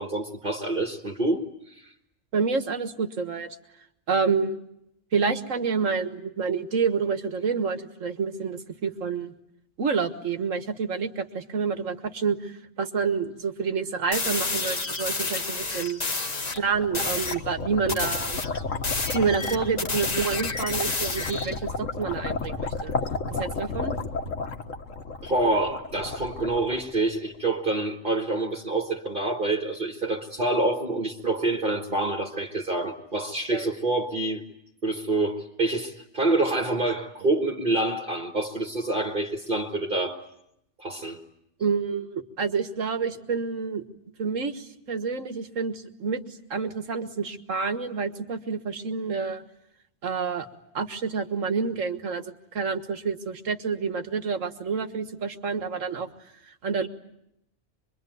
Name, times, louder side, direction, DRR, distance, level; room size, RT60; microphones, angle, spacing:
voice 1, 0.0-1.9 25.2-34.4 34.8-40.2 40.8-41.2, right 2 dB, 40° right, 1.8 m, -27 dB
voice 2, 2.3-3.6 4.1-4.6 5.1-9.3 9.8-16.0 16.5-18.4 19.1-22.9 23.4-23.9 33.5-33.7 41.6-43.8 44.2-46.2 46.5-49.4 50.0-50.5 50.7-56.1 56.5-56.9, right 5 dB, 70° right, 1.9 m, -28 dB
sound 1, 14.1-16.6 16.9-17.4 17.9-21.6, left 3 dB, 30° left, 1.3 m, -30 dB
sound 2, 16.2-27.4, left 3 dB, 70° left, 2.0 m, -33 dB
25.0 x 23.0 x 9.3 m
omnidirectional pair, 1.4 m